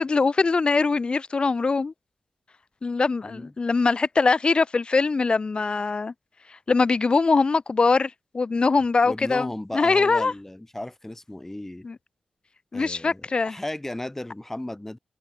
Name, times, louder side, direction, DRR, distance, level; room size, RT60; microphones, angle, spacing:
voice 1, 0.0-1.9 2.8-6.1 6.7-10.3 11.8-12.0 12.7-13.6, left 4 dB, 40° left, 0.6 m, -22 dB
voice 2, 9.0-11.9 12.7-15.0, left 1 dB, 15° left, 1.8 m, -35 dB
cardioid pair, 75°, 2 cm